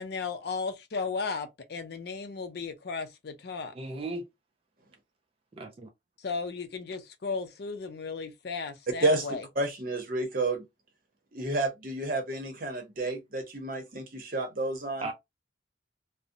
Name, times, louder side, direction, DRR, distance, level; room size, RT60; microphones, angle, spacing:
voice 1, 0.0-3.7 6.2-9.4, left 4 dB, 60° left, 0.5 m, -35 dB
voice 2, 3.8-4.3 5.5-5.9 15.0-15.1, right 2 dB, 30° right, 0.3 m, -36 dB
voice 3, 9.6-10.6 11.3-15.1, right 2 dB, 50° right, 0.8 m, -30 dB
2.5 x 2.0 x 2.6 m
head